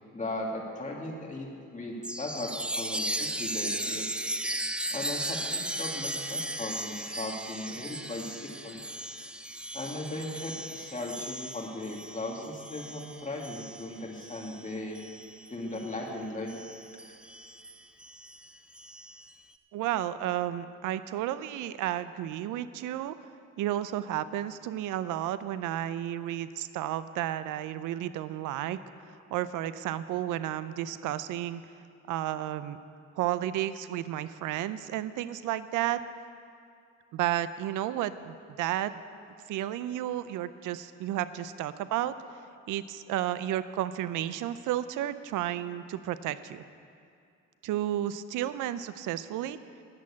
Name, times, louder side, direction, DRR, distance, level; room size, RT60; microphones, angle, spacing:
voice 1, 0.1-4.0 4.9-8.8 9.7-15.0 15.5-16.5, left 1 dB, 25° left, -1 dB, 2.2 m, -37 dB
Chime, 2.0-16.0 16.5-19.3, right 1 dB, 5° right, 0.5 m, -37 dB
voice 2, 19.7-23.2 23.6-28.8 29.3-31.6 32.1-32.8 33.2-36.0 37.1-38.9 39.5-42.1 42.7-46.6 47.6-49.6, right 12 dB, 85° right, 14 dB, 0.5 m, -32 dB
10.5 x 7.5 x 8.4 m, 2.4 s
cardioid pair, 90°, 30 cm